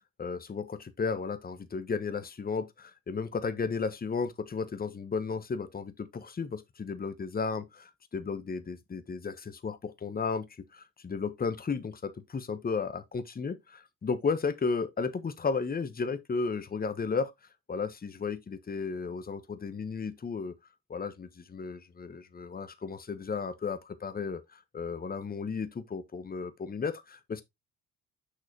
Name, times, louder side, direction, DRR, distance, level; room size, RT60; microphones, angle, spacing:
voice 1, 0.2-17.3 17.7-20.5 20.9-27.4, left 5 dB, 25° left, 1.1 m, -34 dB
6.7 x 6.1 x 2.8 m
hypercardioid pair, 55°, 35 cm